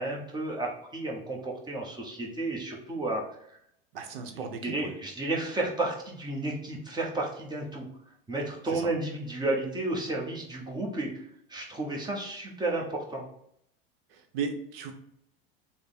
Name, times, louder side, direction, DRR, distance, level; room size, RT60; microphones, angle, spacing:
voice 1, 0.0-3.2 4.6-7.9 8.3-11.2 11.5-13.2, right 2 dB, 15° right, -1 dB, 0.8 m, -32 dB
voice 2, 3.9-4.7 8.7-8.8 14.3-14.9, right 5 dB, 80° right, 5 dB, 0.7 m, -35 dB
3.3 x 2.1 x 4.2 m, 0.72 s
supercardioid pair, 110°, 29 cm